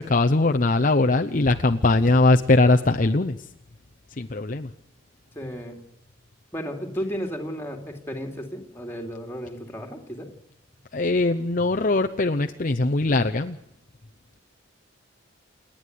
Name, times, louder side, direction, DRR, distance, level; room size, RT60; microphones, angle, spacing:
voice 1, 0.0-3.4 4.2-4.7 10.9-13.6, left 2 dB, 40° left, 6 dB, 0.7 m, -21 dB
voice 2, 5.4-5.8 6.5-10.3, equal, 10° left, 2 dB, 2.7 m, -33 dB
29.0 x 10.0 x 9.4 m, 0.84 s
head